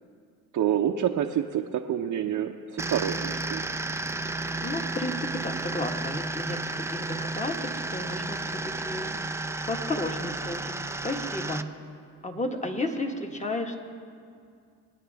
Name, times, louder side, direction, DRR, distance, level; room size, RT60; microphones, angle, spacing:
voice 1, 0.5-3.6, right 10 dB, 55° right, 1 dB, 0.8 m, -27 dB
sound 1, 2.8-11.6, right 2 dB, 10° right, 0.4 m, -32 dB
voice 2, 4.5-9.2 9.7-11.7 12.2-13.8, left 2 dB, 20° left, 4 dB, 1.5 m, -33 dB
24.0 x 9.2 x 3.5 m, 2.3 s
supercardioid pair, 75°, 38 cm